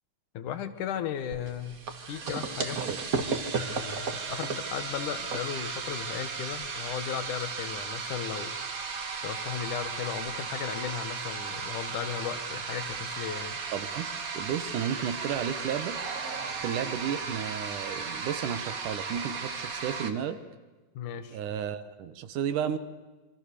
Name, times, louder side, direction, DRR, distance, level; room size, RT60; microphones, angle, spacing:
voice 1, 0.3-1.8 2.1-2.8 3.6-8.5 9.2-13.6 20.9-21.4, left 9 dB, 80° left, 11 dB, 3.0 m, -36 dB
sound 1, 1.3-20.1, right 5 dB, 40° right, 1.4 m, -35 dB
voice 2, 13.7-16.0 16.6-20.4 21.3-22.8, right 8 dB, 90° right, 12 dB, 2.9 m, -33 dB
27.5 x 24.0 x 6.8 m, 1.3 s
omnidirectional pair, 3.5 m